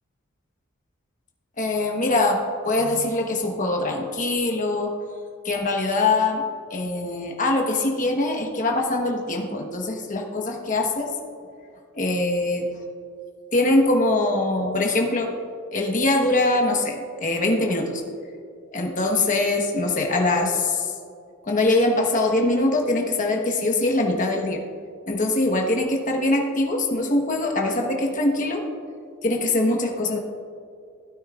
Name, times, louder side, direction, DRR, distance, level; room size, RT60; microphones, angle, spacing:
voice 1, 1.6-4.9 5.4-6.4 6.7-11.1 11.9-12.7 13.5-15.3 15.7-18.0 18.7-20.9 21.4-24.6 25.1-28.6 29.2-30.2, left 2 dB, 40° left, 1 dB, 1.2 m, -23 dB
16.0 x 9.2 x 2.5 m, 2.3 s
head